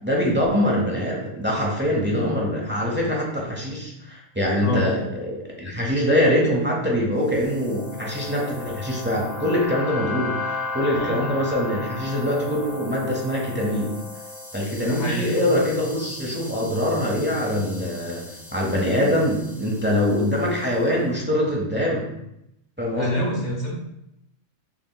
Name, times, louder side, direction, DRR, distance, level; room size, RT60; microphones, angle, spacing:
voice 1, 0.0-13.9 14.5-18.2 18.5-22.1 22.8-23.2, left 1 dB, 10° right, -3 dB, 0.5 m, -23 dB
voice 2, 4.6-5.0 10.9-11.4 14.8-15.5 22.9-23.8, equal, 40° left, -4 dB, 1.1 m, -27 dB
sound 1, 7.3-20.7, left 3 dB, 85° left, 1.4 m, -36 dB
5.9 x 2.9 x 2.3 m, 0.82 s
omnidirectional pair, 1.3 m